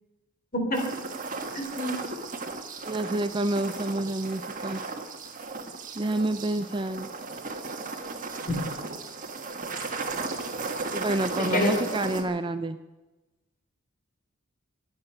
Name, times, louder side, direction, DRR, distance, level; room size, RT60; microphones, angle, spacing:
sound 1, 0.7-12.2, right 3 dB, 40° right, 1.6 m, -35 dB
voice 1, 1.5-2.0 11.4-11.8, left 1 dB, 40° left, 3 dB, 3.6 m, -27 dB
voice 2, 2.8-4.8 5.9-7.1 10.9-12.8, right 2 dB, 25° right, 10 dB, 0.5 m, -28 dB
23.5 x 8.9 x 5.8 m, 1.1 s
head